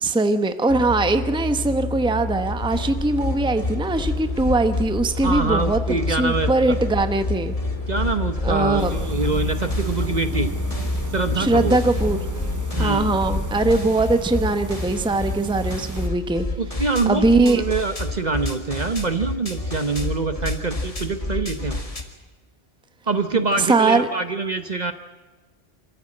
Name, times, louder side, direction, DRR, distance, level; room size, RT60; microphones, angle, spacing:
voice 1, 0.0-5.8 6.2-7.5 8.4-8.9 11.4-12.3 12.8-16.4 17.1-17.6 23.3-24.1, right 2 dB, 5° right, 9 dB, 0.9 m, -21 dB
sound 1, 0.7-13.9, left 3 dB, 60° left, 2.9 m, -29 dB
sound 2, 2.5-22.0, left 2 dB, 30° left, 2.0 m, -30 dB
voice 2, 5.2-6.8 7.9-10.5 11.1-11.8 12.8-13.1 16.6-21.8 23.1-24.9, right 4 dB, 40° right, 9 dB, 1.0 m, -25 dB
sound 3, 8.8-16.1, right 4 dB, 25° right, 0.5 m, -34 dB
25.5 x 14.5 x 8.8 m, 1.2 s
omnidirectional pair, 1.2 m